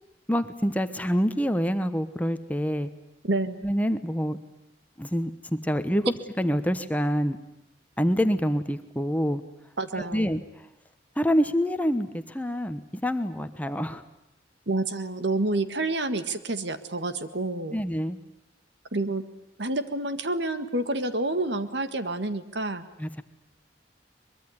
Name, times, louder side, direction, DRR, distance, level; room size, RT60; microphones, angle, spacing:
voice 1, 0.3-2.9 3.6-4.4 5.0-7.4 8.0-9.4 10.0-10.4 11.2-14.0 17.7-18.2 23.0-23.2, equal, 10° left, 9 dB, 1.1 m, -26 dB
voice 2, 3.2-3.6 9.8-10.3 14.7-17.8 18.9-19.2 19.6-22.8, right 2 dB, 65° right, 10 dB, 1.7 m, -28 dB
23.5 x 22.5 x 9.7 m, 0.82 s
head